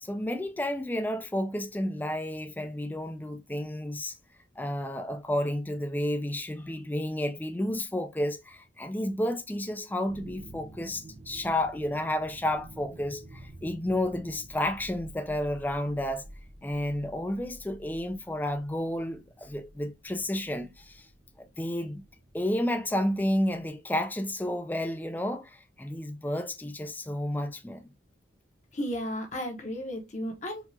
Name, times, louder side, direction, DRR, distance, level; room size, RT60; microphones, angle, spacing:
voice 1, 0.0-4.1 4.6-16.3 16.6-21.1 21.6-22.0 22.3-27.9, left 1 dB, 10° left, 0.3 m, -31 dB
sound 1, 10.0-23.7, right 1 dB, 50° right, 0.8 m, -50 dB
voice 2, 28.7-30.7, equal, 35° left, 0.9 m, -34 dB
4.5 x 2.4 x 2.6 m
head